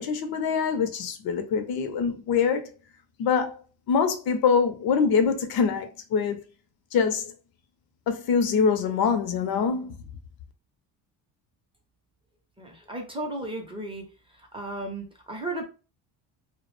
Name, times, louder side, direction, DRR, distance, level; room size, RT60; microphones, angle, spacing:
voice 1, 0.0-2.7 3.2-6.4 6.9-7.3 8.1-10.0, left 6 dB, 55° left, 0.5 m, -24 dB
voice 2, 12.6-14.0 14.3-15.6, right 2 dB, 15° right, 0.5 m, -34 dB
2.2 x 2.0 x 3.0 m
cardioid pair, 115°, 43 cm